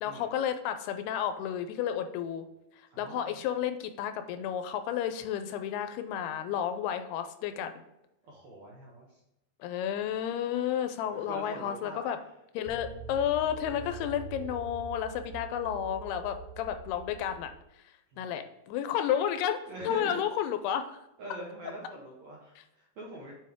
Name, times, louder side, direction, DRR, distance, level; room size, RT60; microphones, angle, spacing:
voice 1, 0.0-2.5 3.0-7.7 9.6-12.2 12.5-17.5 18.2-19.6 19.8-21.0, left 9 dB, 85° left, 9 dB, 2.5 m, -31 dB
voice 2, 2.9-3.4 8.2-9.2 11.1-12.0 13.4-13.5 18.1-18.3 19.7-20.2 21.2-23.3, right 1 dB, 65° right, -3 dB, 1.8 m, -43 dB
sound 1, 12.7-17.6, right 6 dB, 80° right, 2.3 m, -44 dB
7.7 x 5.2 x 3.6 m, 0.89 s
omnidirectional pair, 4.7 m